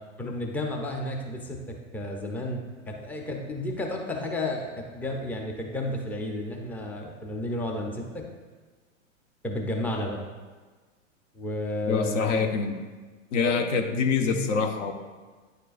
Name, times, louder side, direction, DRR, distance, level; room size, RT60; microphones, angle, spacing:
voice 1, 0.2-8.3 9.4-10.2 11.3-12.3, left 1 dB, 5° left, 1 dB, 0.5 m, -32 dB
voice 2, 11.9-12.8 13.3-14.9, left 5 dB, 65° left, 7 dB, 0.8 m, -25 dB
9.7 x 4.4 x 2.5 m, 1.4 s
hypercardioid pair, 110°, 40 cm